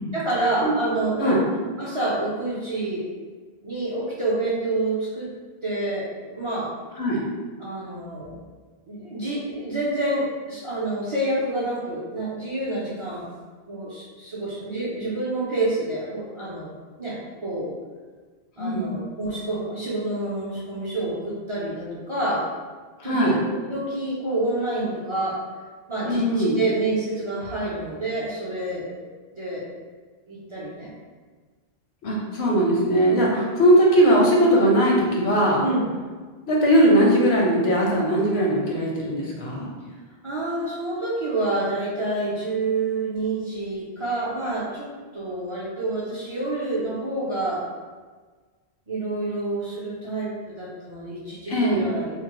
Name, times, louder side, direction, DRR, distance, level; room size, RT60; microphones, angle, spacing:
voice 1, 0.1-1.4 1.8-3.1 3.6-5.3 5.6-6.7 7.6-8.4 8.9-13.3 13.6-16.7 17.0-17.7 18.6-22.4 23.0-23.4 23.6-25.4 25.9-29.7 30.3-30.9 33.3-33.4 35.6-35.9 40.2-44.9 45.1-47.6 48.9-50.3 50.6-52.2, right 2 dB, 40° right, -9 dB, 0.5 m, -28 dB
voice 2, 18.6-18.9 23.0-23.4 26.0-26.6 32.0-35.6 36.5-39.7 51.5-51.8, right 1 dB, 80° left, -3 dB, 0.9 m, -19 dB
2.8 x 2.0 x 2.9 m, 1.4 s
omnidirectional pair, 1.1 m